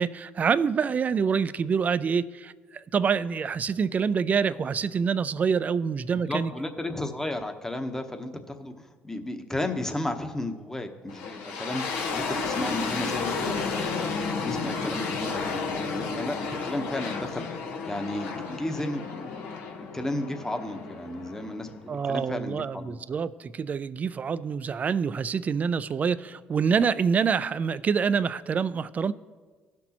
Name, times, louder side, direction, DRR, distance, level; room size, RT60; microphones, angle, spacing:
voice 1, 0.0-6.5 21.9-29.1, right 6 dB, 40° right, 0.4 m, -26 dB
voice 2, 6.1-19.4 19.8-23.0, left 1 dB, 10° left, 1.0 m, -34 dB
sound 1, 11.1-22.0, left 4 dB, 85° left, 1.2 m, -32 dB
16.0 x 6.0 x 2.9 m
supercardioid pair, 80°, 4 cm